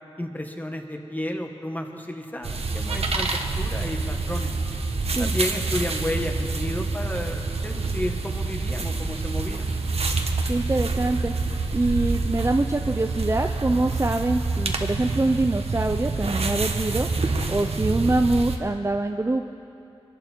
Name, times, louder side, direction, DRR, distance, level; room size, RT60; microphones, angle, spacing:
voice 1, 0.2-4.5 5.2-9.7, left 1 dB, 15° left, 4 dB, 1.6 m, -32 dB
sound 1, 2.4-18.6, right 3 dB, 75° right, 1.1 m, -27 dB
voice 2, 10.5-11.3 11.7-17.1 17.5-19.5, right 2 dB, 25° right, 5 dB, 0.6 m, -24 dB
23.0 x 11.5 x 4.6 m, 2.7 s
cardioid pair, 45°, 11 cm